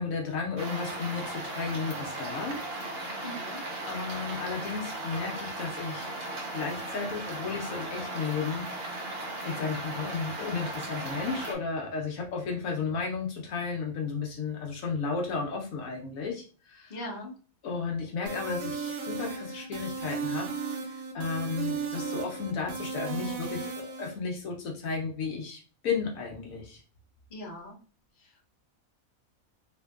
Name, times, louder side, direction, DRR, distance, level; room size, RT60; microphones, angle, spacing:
voice 1, 0.0-2.6 3.9-6.1 6.5-8.6 9.4-17.0 17.6-20.5 20.8-26.8, left 5 dB, 75° left, 0 dB, 1.1 m, -33 dB
sound 1, 0.6-11.5, right 2 dB, 50° right, 0.9 m, -37 dB
voice 2, 3.2-3.6 16.9-17.3 27.3-27.8 28.2-28.6, left 1 dB, 40° left, -1 dB, 0.9 m, -40 dB
sound 2, 18.3-24.1, right 5 dB, 75° right, 1.1 m, -35 dB
3.5 x 2.5 x 2.3 m, 0.38 s
omnidirectional pair, 1.5 m